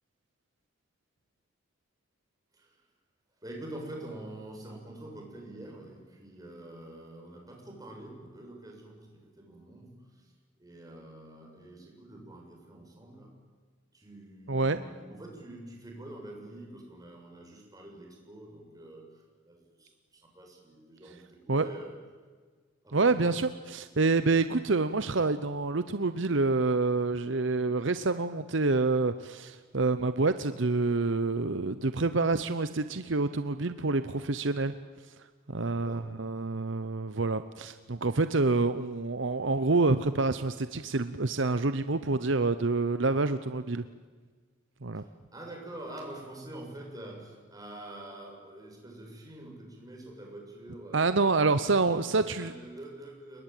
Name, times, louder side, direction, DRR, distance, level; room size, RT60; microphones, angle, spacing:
voice 1, 3.4-10.3 10.6-13.3 13.9-21.9 22.8-23.3 35.5-36.3 44.9-51.1 51.5-53.4, right 1 dB, 20° right, 0 dB, 7.2 m, -46 dB
voice 2, 22.9-34.7 35.5-43.8 44.8-45.0 50.9-52.5, right 3 dB, 65° right, 12 dB, 0.9 m, -27 dB
30.0 x 20.0 x 9.1 m, 1.5 s
head